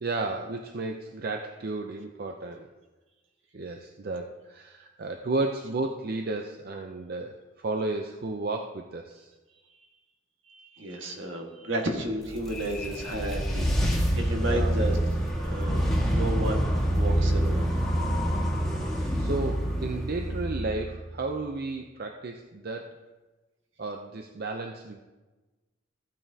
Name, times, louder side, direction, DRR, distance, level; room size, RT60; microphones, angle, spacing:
voice 1, 0.0-2.7 3.5-9.3 14.5-14.8 19.1-23.0 23.8-25.0, right 2 dB, 50° right, 4 dB, 0.5 m, -33 dB
voice 2, 10.6-15.0 15.4-17.7, right 1 dB, 75° right, 2 dB, 1.6 m, -33 dB
sound 1, 12.1-21.3, equal, ahead, 1.8 m, -27 dB
14.5 x 9.0 x 2.8 m, 1.2 s
head